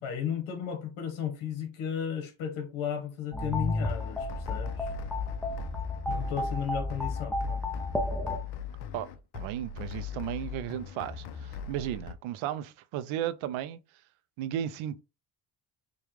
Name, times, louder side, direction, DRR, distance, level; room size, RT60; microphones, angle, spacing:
voice 1, 0.0-4.9 6.1-7.6, left 8 dB, 80° left, 1.2 m, -34 dB
sound 1, 3.3-8.4, left 2 dB, ahead, 0.4 m, -32 dB
sound 2, 3.4-12.1, left 6 dB, 55° left, 0.6 m, -41 dB
voice 2, 9.3-13.8 14.4-15.0, right 11 dB, 80° right, 0.6 m, -34 dB
5.1 x 2.3 x 3.1 m
cardioid pair, 145°, 47 cm